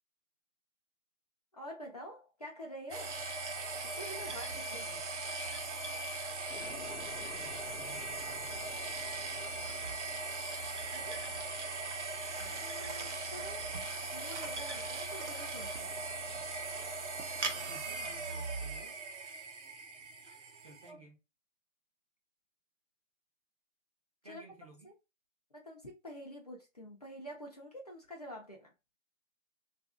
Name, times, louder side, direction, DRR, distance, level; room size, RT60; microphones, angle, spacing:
voice 1, 1.5-3.2 3.8-4.8 10.9-11.3 12.5-13.7 14.1-15.9 20.3-20.4 20.9-21.0 24.3-24.4 24.8-24.9 25.5-28.7, equal, 30° left, 0.6 m, -47 dB
sound 1, 2.9-20.9, right 3 dB, 60° right, 0.8 m, -39 dB
voice 2, 4.6-5.1 6.7-10.4 17.4-19.0 20.6-21.2 24.2-24.9, right 2 dB, 25° right, 0.7 m, -56 dB
sound 2, 6.5-18.5, left 6 dB, 70° left, 0.7 m, -56 dB
2.8 x 2.5 x 3.5 m
hypercardioid pair, 165°, 39 cm